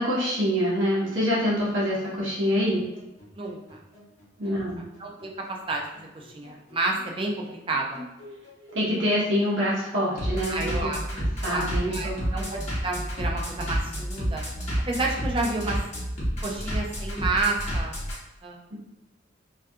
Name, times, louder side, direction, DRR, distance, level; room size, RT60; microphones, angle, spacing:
voice 1, 0.0-2.8 4.4-4.8 8.7-10.9 11.1-12.5, equal, 90° right, -6 dB, 0.7 m, -26 dB
Bass drum, 2.2-18.2, equal, 35° left, 0.9 m, -31 dB
voice 2, 3.4-3.8 4.4-4.6 5.0-8.0 10.5-11.0 11.5-14.4 14.9-15.8 16.4-17.9 18.4-18.6, right 3 dB, 30° right, 0 dB, 0.4 m, -30 dB
2.4 x 2.2 x 2.6 m, 0.99 s
head